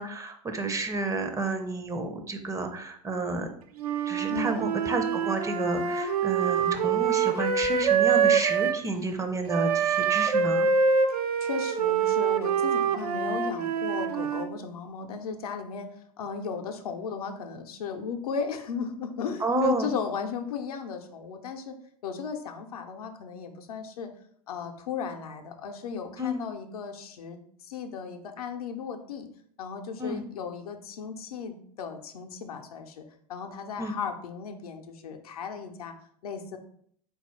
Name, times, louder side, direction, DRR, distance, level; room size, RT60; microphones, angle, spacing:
voice 1, 0.0-3.5 4.1-10.7 19.4-19.9 26.2-26.4 30.0-30.2 33.8-33.9, right 2 dB, 15° right, 6 dB, 0.5 m, -30 dB
Wind instrument woodwind instrument, 3.8-8.8 9.5-14.5, right 6 dB, 80° right, 0.5 m, -25 dB
voice 2, 4.3-4.7 11.4-15.9 16.2-21.8 22.0-24.1 24.5-27.4 27.7-29.3 29.6-33.0 33.3-35.9 36.2-36.6, left 6 dB, 75° left, 5 dB, 0.6 m, -36 dB
4.1 x 2.4 x 4.1 m, 0.63 s
figure-of-eight pair, 80°, 19 cm